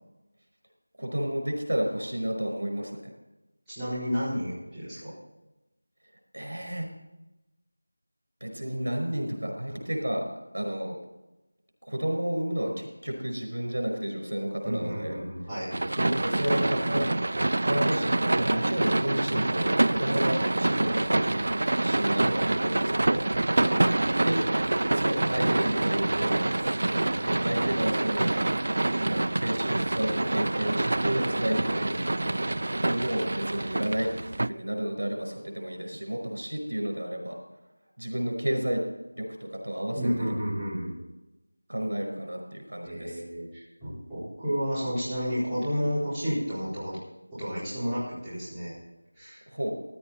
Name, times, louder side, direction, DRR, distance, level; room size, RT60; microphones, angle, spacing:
voice 1, 1.0-3.1 6.3-6.9 8.4-10.2 10.5-11.0 11.8-15.2 16.0-17.1 17.6-21.3 21.8-23.3 24.1-24.4 24.9-26.7 27.2-28.3 29.1-32.0 32.8-37.4 38.0-38.8 39.2-40.3 41.7-43.2 49.5-49.7, equal, 80° right, 2 dB, 5.0 m, -31 dB
voice 2, 3.7-5.2 14.6-15.8 23.6-23.8 27.1-27.8 31.6-31.8 39.9-40.9 42.8-47.0 47.3-48.7 49.1-49.4, equal, 5° right, -17 dB, 4.1 m, -31 dB
sound 1, 15.7-34.5, right 2 dB, 50° right, 0.3 m, -26 dB
15.5 x 10.5 x 4.1 m, 1.0 s
figure-of-eight pair, 175°, 0 cm